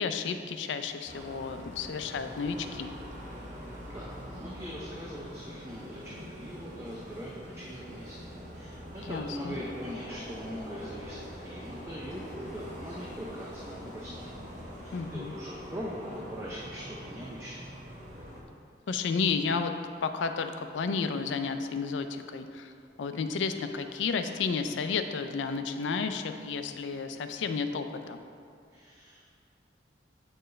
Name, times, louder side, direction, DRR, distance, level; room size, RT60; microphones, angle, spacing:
voice 1, 0.0-2.9 9.1-9.6 14.9-15.3 18.9-19.7 20.0-22.7 23.0-28.2, left 5 dB, 85° left, 8 dB, 0.4 m, -32 dB
sound 1, 1.1-18.4, equal, 40° right, 0.7 m, -44 dB
voice 2, 3.9-8.2 8.5-14.4 14.8-17.6 28.7-29.2, equal, 15° right, -5 dB, 0.4 m, -41 dB
sound 2, 9.7-15.1, left 1 dB, 45° left, 1.0 m, -49 dB
7.7 x 4.4 x 3.2 m, 2.3 s
head